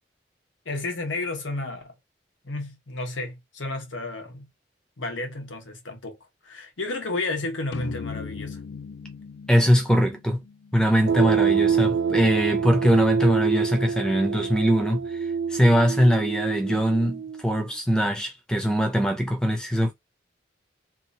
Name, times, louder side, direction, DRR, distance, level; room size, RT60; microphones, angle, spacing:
voice 1, 0.6-1.9 2.4-4.5 5.0-6.2 6.4-8.6, left 2 dB, 90° left, 1.2 m, -32 dB
sound 1, 7.7-11.2, left 5 dB, 70° left, 0.4 m, -38 dB
voice 2, 9.5-10.4 10.7-15.1 15.5-19.9, equal, 5° left, 0.7 m, -22 dB
sound 2, 11.1-17.6, right 6 dB, 85° right, 0.3 m, -26 dB
2.9 x 2.5 x 4.1 m
head